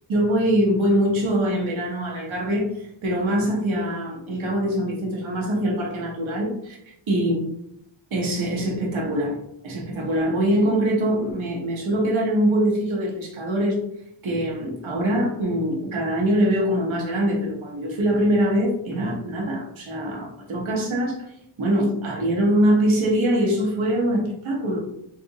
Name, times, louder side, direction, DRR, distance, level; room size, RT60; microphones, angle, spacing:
voice 1, 0.1-6.8 7.1-7.4 8.1-9.4 9.6-13.8 14.2-21.2 21.6-24.8, right 1 dB, 80° right, -2 dB, 1.0 m, -23 dB
3.8 x 2.6 x 2.6 m, 0.75 s
wide cardioid pair, 150°, 47 cm